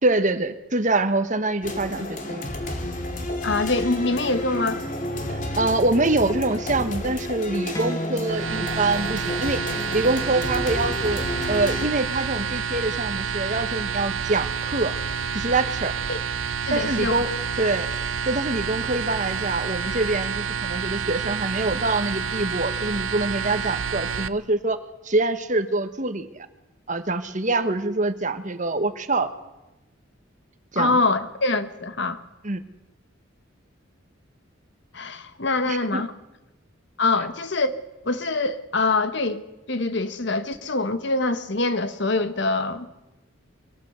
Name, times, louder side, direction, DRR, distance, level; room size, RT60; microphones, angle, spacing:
voice 1, 0.0-2.5 5.3-14.9 15.3-15.9 16.7-17.3 17.6-17.9 18.2-24.8 25.0-26.3 26.9-29.3 30.7-31.0 32.4-32.6 35.7-36.0, right 2 dB, 40° right, 1.4 m, -25 dB
sound 1, 1.6-11.9, left 1 dB, 40° left, 2.6 m, -31 dB
voice 2, 3.4-4.8 16.1-16.2 16.6-17.4 30.8-32.2 34.9-36.1 37.0-37.8 38.0-42.9, left 3 dB, 60° left, 1.4 m, -24 dB
sound 2, 7.8-12.9, left 1 dB, 15° left, 1.0 m, -37 dB
sound 3, 8.2-24.3, right 6 dB, 85° right, 0.7 m, -29 dB
23.0 x 17.5 x 8.1 m
head